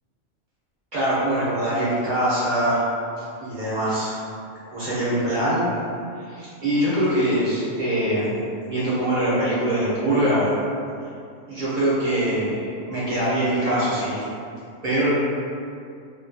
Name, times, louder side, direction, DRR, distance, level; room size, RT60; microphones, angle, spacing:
voice 1, 0.9-2.9 3.4-4.2 4.7-5.8 6.2-10.6 11.5-14.2 14.8-15.1, right 1 dB, 45° right, -10 dB, 0.8 m, -23 dB
2.7 x 2.3 x 2.6 m, 2.4 s
omnidirectional pair, 1.3 m